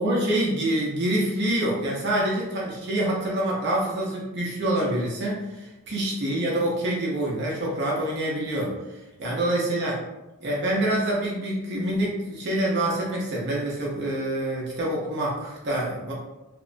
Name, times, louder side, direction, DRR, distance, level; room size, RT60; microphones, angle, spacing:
voice 1, 0.0-8.7 9.2-10.0 10.4-16.1, right 1 dB, 50° right, -4 dB, 0.5 m, -26 dB
2.8 x 2.1 x 2.5 m, 1.0 s
head